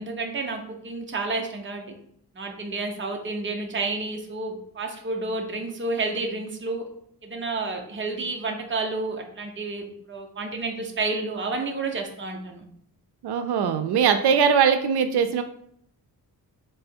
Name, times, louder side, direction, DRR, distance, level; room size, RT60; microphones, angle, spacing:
voice 1, 0.0-1.8 2.4-6.8 7.2-12.6, right 3 dB, 30° right, 2 dB, 0.7 m, -30 dB
voice 2, 13.2-15.4, right 7 dB, 90° right, 8 dB, 0.5 m, -21 dB
3.6 x 3.4 x 4.3 m, 0.67 s
wide cardioid pair, 155°, 38 cm